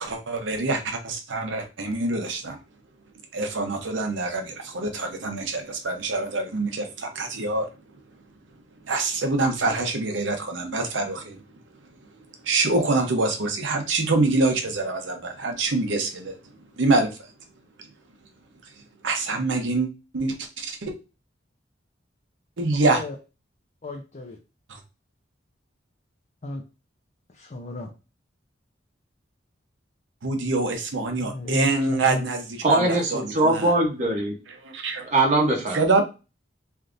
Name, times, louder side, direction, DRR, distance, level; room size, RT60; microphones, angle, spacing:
voice 1, 0.0-2.6 3.3-7.7 8.8-11.4 12.4-16.4 16.8-17.2 19.0-20.9 22.6-23.0 24.7-24.8 30.2-33.7 34.6-35.1 35.7-36.0, right 3 dB, 75° right, 5 dB, 0.7 m, -25 dB
voice 2, 22.7-23.1 23.8-24.4 26.4-26.6 27.4-27.9 31.2-32.2, left 2 dB, 40° left, 2 dB, 0.5 m, -33 dB
voice 3, 32.6-34.3 35.1-35.8, right 2 dB, 40° right, 0 dB, 0.8 m, -21 dB
3.5 x 2.7 x 2.4 m, 0.30 s
head